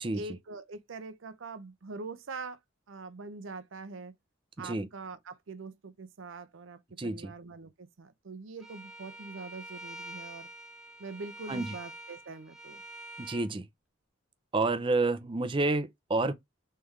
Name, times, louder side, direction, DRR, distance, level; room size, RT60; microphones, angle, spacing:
voice 1, 0.1-2.6 2.9-4.1 4.6-10.5 11.0-12.8, right 3 dB, 75° right, 0.6 m, -43 dB
voice 2, 7.0-7.3 11.5-11.8 13.2-13.7 14.5-16.3, right 2 dB, 25° right, 0.5 m, -29 dB
Bowed string instrument, 8.6-13.5, right 1 dB, 5° right, 1.0 m, -46 dB
3.6 x 3.3 x 3.2 m
head